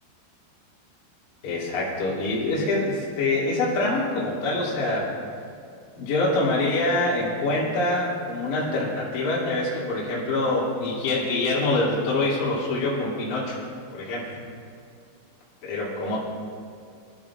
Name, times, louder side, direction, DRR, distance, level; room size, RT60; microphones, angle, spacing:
voice 1, 1.4-5.1 6.0-13.6 13.9-14.4 15.6-16.2, left 2 dB, 45° left, -8 dB, 3.3 m, -25 dB
22.5 x 12.0 x 2.4 m, 2.3 s
omnidirectional pair, 5.6 m